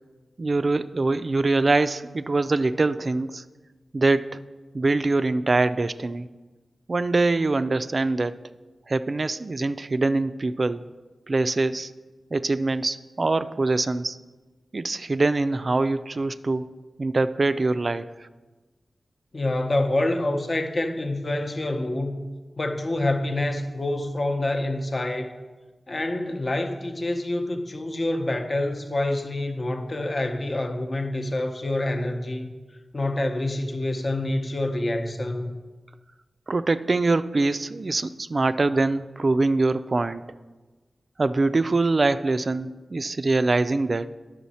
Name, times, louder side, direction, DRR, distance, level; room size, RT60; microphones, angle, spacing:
voice 1, 0.4-3.4 3.9-4.4 4.7-6.3 6.9-8.4 8.9-10.8 11.3-11.9 12.3-14.2 14.7-16.7 17.0-18.3 36.5-40.2 41.2-44.1, right 3 dB, 50° right, 12 dB, 0.3 m, -23 dB
voice 2, 19.3-22.2 22.6-25.4 25.9-32.5 32.9-35.6, left 1 dB, 45° left, 5 dB, 0.8 m, -27 dB
10.0 x 6.2 x 4.2 m, 1.3 s
wide cardioid pair, 65°, 0 cm